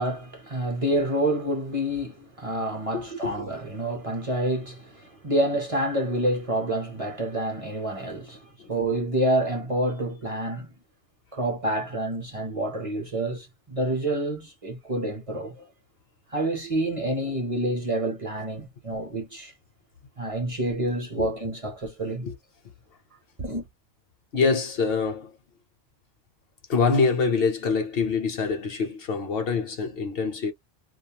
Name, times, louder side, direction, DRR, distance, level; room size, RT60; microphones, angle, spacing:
voice 1, 0.0-10.7 11.3-15.7 16.3-19.5 20.2-22.3 23.4-23.7, right 1 dB, 35° right, 0.7 m, -28 dB
voice 2, 2.9-3.4 8.6-8.7 21.2-21.3 22.2-22.3 24.3-25.3 26.7-30.5, left 4 dB, 60° left, 0.8 m, -25 dB
2.4 x 2.0 x 2.7 m
omnidirectional pair, 1.2 m